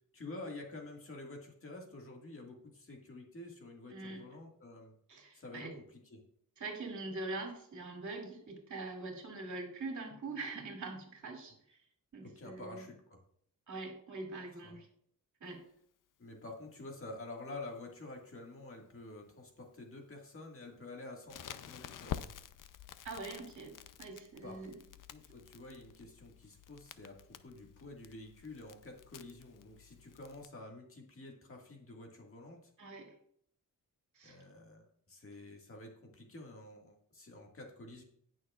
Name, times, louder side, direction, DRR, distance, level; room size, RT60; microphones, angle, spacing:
voice 1, 0.1-4.9 5.3-5.8 6.1-6.2 12.2-13.2 14.6-14.8 16.2-22.2 24.4-24.6 25.1-32.7 34.2-38.0, left 2 dB, 40° left, 1 dB, 1.9 m, -49 dB
voice 2, 3.9-4.2 5.1-5.7 6.6-11.8 12.1-12.9 13.7-14.9 15.4-15.6 23.0-24.7 32.8-33.1 34.1-34.4, right 3 dB, 60° right, 1 dB, 2.5 m, -43 dB
Crackle, 21.3-30.5, left 10 dB, 65° left, 0.6 m, -49 dB
19.0 x 6.4 x 2.4 m, 0.66 s
wide cardioid pair, 135°, 35 cm